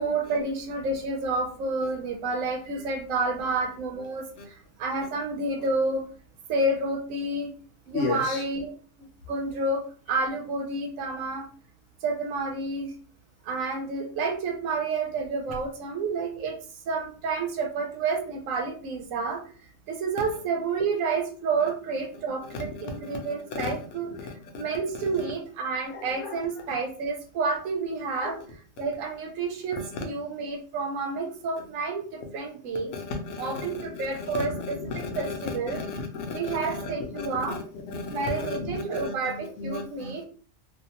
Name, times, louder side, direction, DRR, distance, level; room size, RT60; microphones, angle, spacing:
voice 1, 0.0-4.3 4.8-6.0 6.5-7.5 7.9-8.7 9.3-9.8 10.1-11.5 12.0-12.9 13.5-16.5 16.9-19.4 19.9-24.1 24.6-28.4 28.8-32.9 33.4-34.8 35.2-35.8 36.3-37.6 38.1-40.2, right 3 dB, 85° right, 3 dB, 1.0 m, -29 dB
voice 2, 7.9-8.4 22.5-23.7 24.2-24.6 25.1-25.3 25.9-26.4 28.1-28.4 29.7-30.0 32.2-32.3 32.7-37.6 37.9-40.2, left 4 dB, 70° left, 4 dB, 0.9 m, -34 dB
2.6 x 2.2 x 2.8 m, 0.40 s
omnidirectional pair, 1.4 m